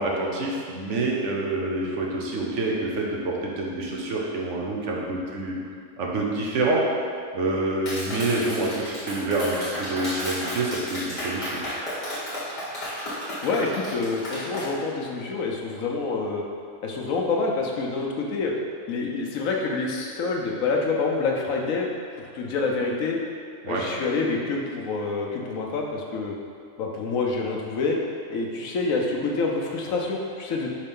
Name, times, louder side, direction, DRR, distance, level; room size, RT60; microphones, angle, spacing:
voice 1, 0.0-5.6 6.0-6.8 7.3-11.6 23.6-23.9, right 2 dB, 65° right, -2 dB, 1.2 m, -27 dB
Clapping, 7.9-14.7, equal, 35° left, 1.7 m, -33 dB
voice 2, 13.4-16.4 16.8-18.5 18.9-21.9 22.2-23.2 23.7-26.3 26.8-28.0 28.3-30.7, left 3 dB, 90° left, -1 dB, 1.2 m, -27 dB
5.4 x 3.3 x 5.3 m, 2.2 s
omnidirectional pair, 1.4 m